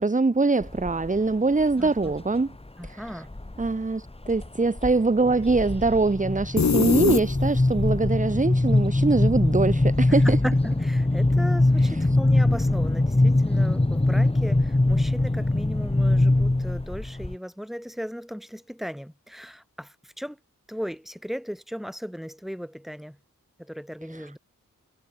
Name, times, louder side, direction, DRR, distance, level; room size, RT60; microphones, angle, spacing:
voice 1, 0.0-2.6 2.8-3.2 3.6-10.4 11.8-12.2 24.1-24.3, right 3 dB, 20° right, 1.2 m, -23 dB
sound 1, 0.6-1.2 1.6-2.2 2.8-3.7 4.1-4.5 4.8-17.3, left 2 dB, 15° left, 1.8 m, -22 dB
voice 2, 1.8-2.1 2.8-3.3 10.2-20.4 20.7-23.2 23.6-24.4, equal, ahead, 4.2 m, -36 dB
sound 2, 6.6-7.8, left 5 dB, 50° left, 1.6 m, -22 dB
cardioid pair, 55°, 34 cm